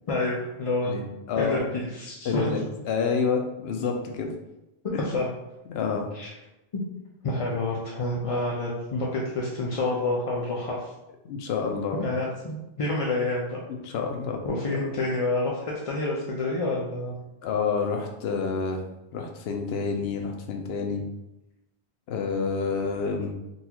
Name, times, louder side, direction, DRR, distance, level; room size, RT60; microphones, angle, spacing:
voice 1, 0.1-1.0 1.3-2.6 4.8-5.3 6.1-6.3 6.7-6.8 7.2-10.9 12.0-13.6 14.4-17.2, left 2 dB, 45° left, -4 dB, 0.4 m, -28 dB
voice 2, 0.8-1.6 2.2-4.3 4.9-5.0 5.7-6.1 11.2-12.0 13.9-14.4 14.7-14.8 17.4-18.8 19.1-21.0 22.1-23.3, left 5 dB, 75° left, 3 dB, 0.8 m, -28 dB
3.9 x 2.4 x 2.8 m, 0.93 s
omnidirectional pair, 1.1 m